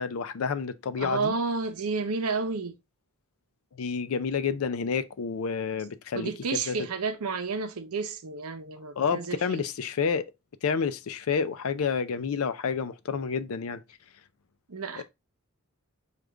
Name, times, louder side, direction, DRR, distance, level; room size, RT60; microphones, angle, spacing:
voice 1, 0.0-1.3 3.7-6.8 9.0-10.2 10.6-13.8 15.0-15.1, left 6 dB, 75° left, 0.4 m, -29 dB
voice 2, 1.0-2.7 6.1-9.6 14.7-15.0, right 4 dB, 90° right, 0.7 m, -31 dB
5.0 x 2.4 x 3.2 m
head